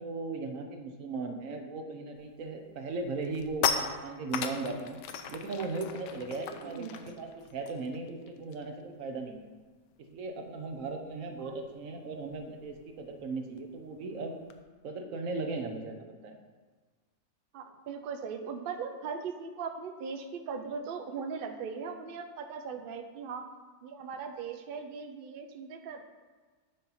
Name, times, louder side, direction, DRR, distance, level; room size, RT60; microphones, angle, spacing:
voice 1, 0.0-5.0 5.3-9.5 10.0-14.4 14.8-16.3, right 3 dB, 60° right, 4 dB, 1.1 m, -37 dB
sound 1, 2.2-2.5 2.9-8.8 9.1-9.3 9.6-14.6, left 7 dB, 90° left, 1.2 m, -38 dB
voice 2, 6.6-7.0 11.4-11.5 17.5-23.5 23.8-26.0, right 5 dB, 85° right, 5 dB, 0.4 m, -39 dB
8.6 x 4.0 x 5.7 m, 1.4 s
omnidirectional pair, 1.8 m